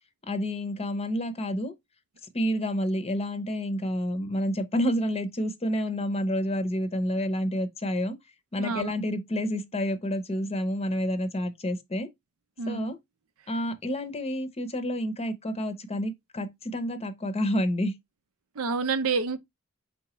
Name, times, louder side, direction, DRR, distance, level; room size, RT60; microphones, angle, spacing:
voice 1, 0.3-1.7 2.3-8.2 8.5-12.1 12.7-13.0 13.5-17.9, equal, 30° left, 0.7 m, -29 dB
voice 2, 8.6-8.9 12.6-12.9 18.6-19.4, right 4 dB, 80° right, 0.6 m, -28 dB
4.9 x 3.5 x 3.0 m
head